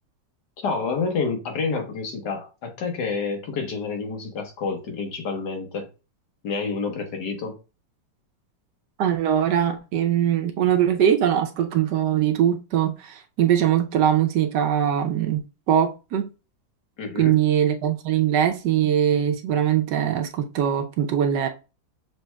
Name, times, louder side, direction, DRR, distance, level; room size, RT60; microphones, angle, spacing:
voice 1, 0.6-5.9 6.4-7.6 17.0-17.4, left 4 dB, 70° left, 1.7 m, -28 dB
voice 2, 9.0-16.3 17.2-21.5, right 10 dB, 75° right, 1.2 m, -22 dB
6.7 x 3.2 x 2.2 m
omnidirectional pair, 2.0 m